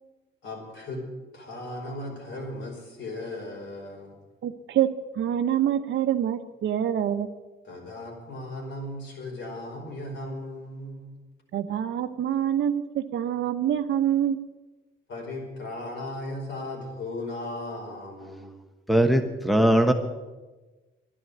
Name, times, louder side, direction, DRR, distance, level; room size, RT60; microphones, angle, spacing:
voice 1, 0.4-1.0 1.3-4.2 7.6-11.1 15.1-18.5, left 1 dB, 70° left, 0 dB, 5.2 m, -36 dB
voice 2, 4.4-4.9 5.2-7.3 11.5-14.4, right 10 dB, 70° right, 9 dB, 1.0 m, -26 dB
voice 3, 18.9-19.9, right 1 dB, ahead, 7 dB, 1.2 m, -20 dB
11.5 x 11.5 x 9.3 m, 1.2 s
cardioid pair, 90°, 20 cm